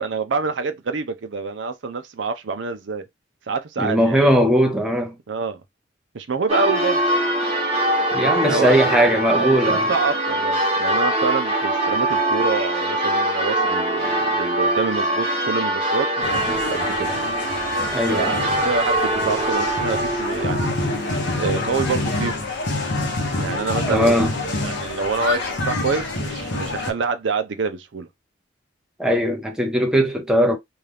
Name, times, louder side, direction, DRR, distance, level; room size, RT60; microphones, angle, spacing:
voice 1, 0.0-3.0 3.5-4.2 5.3-5.6 6.1-7.0 8.2-9.1 9.4-17.1 18.1-20.7 21.4-22.4 23.3-24.2 24.6-28.1, right 4 dB, 70° right, 0.5 m, -26 dB
voice 2, 3.8-5.2 8.1-9.9 17.9-18.4 23.9-24.3 29.0-30.6, equal, 5° right, 0.6 m, -19 dB
Church bell, 6.5-22.2, right 1 dB, 30° right, 0.9 m, -23 dB
sound 1, 16.2-26.9, left 2 dB, 65° left, 0.9 m, -27 dB
2.6 x 2.4 x 3.3 m
head